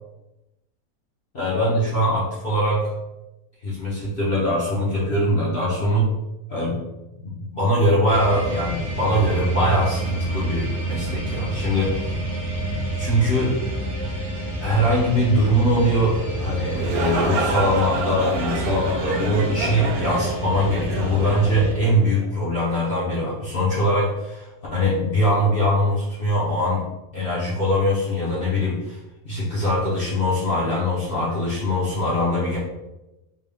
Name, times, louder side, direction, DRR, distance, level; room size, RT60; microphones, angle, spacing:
voice 1, 1.3-2.9 3.6-6.1 6.5-6.8 7.2-12.2 13.0-13.5 14.6-26.9 27.1-29.0 29.2-32.6, equal, 45° left, -7 dB, 0.9 m, -22 dB
sound 1, 8.1-21.7, right 2 dB, 55° right, 1.3 m, -28 dB
sound 2, 16.5-22.3, right 4 dB, 85° right, 1.1 m, -29 dB
3.6 x 2.3 x 3.5 m, 0.99 s
omnidirectional pair, 1.6 m